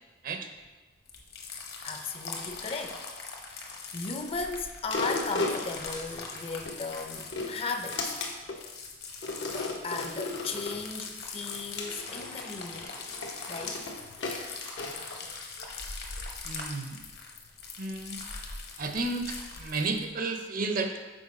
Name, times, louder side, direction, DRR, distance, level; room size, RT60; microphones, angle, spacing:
sound 1, 1.1-20.1, left 4 dB, 65° left, 0.9 m, -42 dB
voice 1, 1.8-3.0 3.5-3.7 3.9-8.2 9.5-13.0 13.5-13.8, left 4 dB, 35° left, 6 dB, 0.4 m, -36 dB
sound 2, 4.9-6.8 7.2-8.6 9.2-10.8 11.5-15.7 16.2-16.3, left 2 dB, 90° left, 0.9 m, -35 dB
voice 2, 16.4-16.9 17.8-18.2 18.8-20.9, right 3 dB, 50° right, 6 dB, 0.6 m, -32 dB
6.3 x 4.6 x 4.1 m, 1.2 s
head